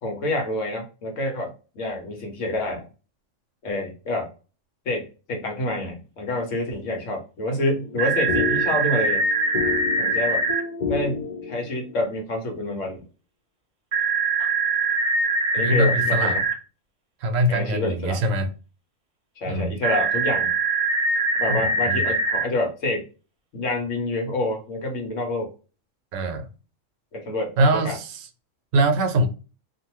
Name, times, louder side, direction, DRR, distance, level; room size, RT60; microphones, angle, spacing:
voice 1, 0.0-2.9 3.6-4.3 4.9-9.2 10.0-10.5 10.9-11.2 11.5-13.0 15.5-16.4 17.5-18.2 19.4-20.5 21.4-23.1 23.5-25.5 27.1-28.0, left 1 dB, 75° left, 1.3 m, -27 dB
sound 1, 7.7-12.0, left 6 dB, 55° left, 0.5 m, -30 dB
sound 2, 8.0-10.6 13.9-16.5 19.8-22.4, right 3 dB, 35° right, 0.7 m, -23 dB
voice 2, 15.6-16.5 17.2-18.5 19.4-19.8 21.5-21.6 21.9-22.0 26.1-26.5 27.6-28.3 28.7-29.3, right 1 dB, 80° right, 1.0 m, -23 dB
2.6 x 2.5 x 2.9 m
omnidirectional pair, 1.3 m